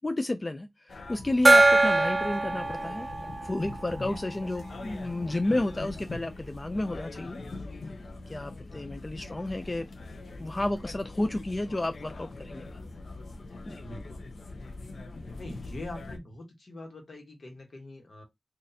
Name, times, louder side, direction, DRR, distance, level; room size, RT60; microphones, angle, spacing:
voice 1, 0.0-3.1 3.4-7.4 8.3-9.9 10.4-12.8 13.7-13.8, left 2 dB, 30° left, 0.3 m, -31 dB
sound 1, 0.9-16.2, left 2 dB, 75° left, 0.6 m, -42 dB
Gong, 1.4-4.7, right 2 dB, 35° right, 0.5 m, -23 dB
voice 2, 13.8-14.2 15.4-18.2, left 2 dB, 60° left, 1.2 m, -43 dB
3.9 x 2.5 x 2.7 m
wide cardioid pair, 90°, 0 cm